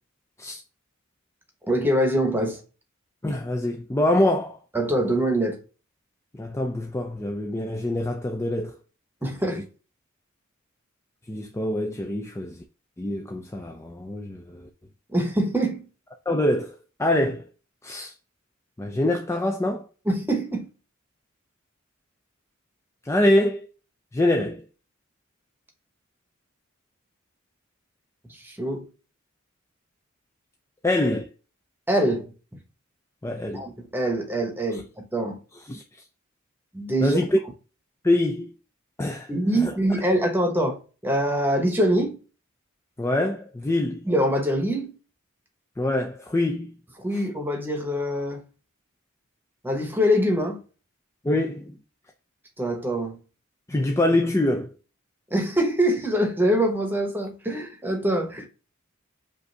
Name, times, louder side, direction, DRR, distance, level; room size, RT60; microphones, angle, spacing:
voice 1, 1.7-2.6 4.7-5.6 9.2-9.7 15.1-15.8 20.0-20.7 28.3-28.9 31.9-32.3 33.5-35.4 36.7-37.2 39.3-42.2 44.1-44.9 47.0-48.4 49.6-50.6 52.6-53.2 55.3-58.5, right 1 dB, 10° right, 1.0 m, -24 dB
voice 2, 3.2-4.6 6.4-8.7 11.3-12.6 13.0-14.7 16.3-16.7 17.0-17.4 17.8-18.1 18.8-19.9 23.0-23.7 24.1-24.6 30.8-31.3 33.2-33.6 34.7-34.8 35.7-35.8 37.0-37.4 38.0-38.5 39.0-39.3 39.6-39.7 43.0-44.1 45.8-46.7 51.2-51.7 53.7-54.7, left 1 dB, 15° left, 0.4 m, -24 dB
5.2 x 2.6 x 3.3 m
head